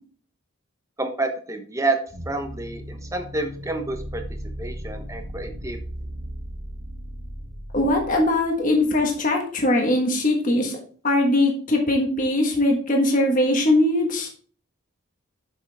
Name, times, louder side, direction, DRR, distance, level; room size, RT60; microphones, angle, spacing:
voice 1, 1.0-2.0 2.3-4.2 4.6-5.8, right 2 dB, 15° right, 6 dB, 0.9 m, -28 dB
sound 1, 2.1-9.2, equal, 50° right, 1.8 m, -37 dB
voice 2, 7.7-10.8 11.0-14.3, left 1 dB, 40° left, 1 dB, 1.4 m, -21 dB
7.1 x 6.4 x 3.4 m, 0.44 s
head